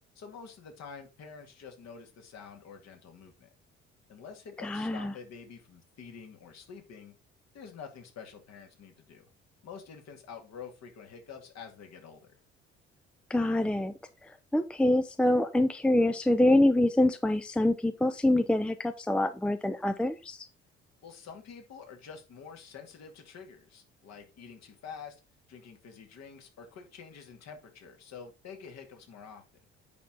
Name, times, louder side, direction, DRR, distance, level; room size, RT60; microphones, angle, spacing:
voice 1, 0.2-3.5 4.1-7.1 7.5-9.2 9.6-12.2 21.0-25.2 25.5-29.4, left 6 dB, 50° left, 4 dB, 2.2 m, -47 dB
voice 2, 4.6-5.1 13.3-13.9 14.5-20.5, left 1 dB, 5° left, 10 dB, 0.6 m, -25 dB
8.4 x 5.9 x 3.9 m, 0.28 s
figure-of-eight pair, 50°, 34 cm